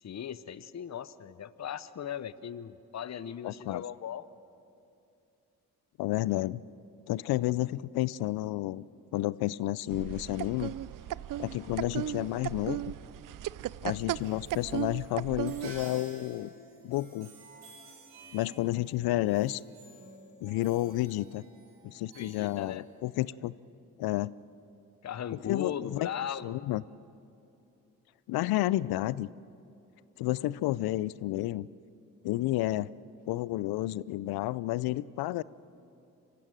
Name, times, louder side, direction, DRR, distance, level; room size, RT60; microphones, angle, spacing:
voice 1, 0.0-4.3 22.1-22.8 25.0-26.6, left 9 dB, 45° left, 16 dB, 0.8 m, -38 dB
voice 2, 3.4-3.8 6.0-6.6 7.1-8.8 9.1-10.7 11.4-12.8 13.8-16.5 16.8-17.3 18.3-19.6 20.4-21.4 21.8-23.5 24.0-24.3 25.5-26.1 26.4-26.8 28.3-29.3 30.2-31.7 32.2-32.9 33.3-35.4, left 16 dB, 80° left, 20 dB, 0.5 m, -31 dB
sound 1, 9.9-15.8, right 13 dB, 60° right, 0.5 m, -36 dB
sound 2, 13.8-23.3, right 1 dB, 85° right, 4.0 m, -52 dB
25.5 x 15.0 x 9.0 m, 2.7 s
hypercardioid pair, 45°, 37 cm